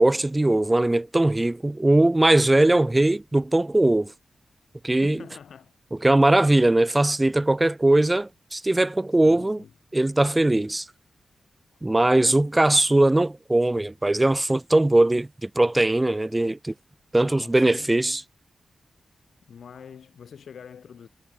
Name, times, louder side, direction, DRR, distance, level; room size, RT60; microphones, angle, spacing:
voice 1, 0.0-4.1 4.8-5.2 6.0-9.6 9.9-10.9 11.8-16.7 17.1-18.2, right 2 dB, 20° right, 0.5 m, -20 dB
voice 2, 5.0-5.7 9.2-9.7 17.2-18.3 19.5-21.1, left 7 dB, 75° left, 2.7 m, -45 dB
cardioid pair, 70°, 0 cm